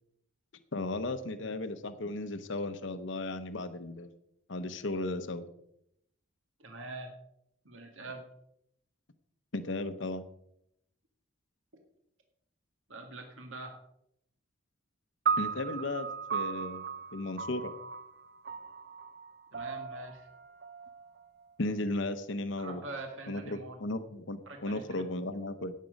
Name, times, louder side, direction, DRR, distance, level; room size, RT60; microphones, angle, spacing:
voice 1, 0.7-4.1 4.5-5.5 9.5-10.2 15.4-16.9 17.1-17.7 21.6-22.8 23.3-25.7, left 2 dB, 65° left, 10 dB, 0.8 m, -35 dB
voice 2, 6.6-7.2 7.7-8.2 12.9-13.7 19.5-20.3 22.6-23.8 24.5-25.0, right 2 dB, 70° right, 3 dB, 2.0 m, -43 dB
sound 1, 15.3-21.7, right 6 dB, 50° right, 0.6 m, -36 dB
17.0 x 7.5 x 5.2 m, 0.77 s
head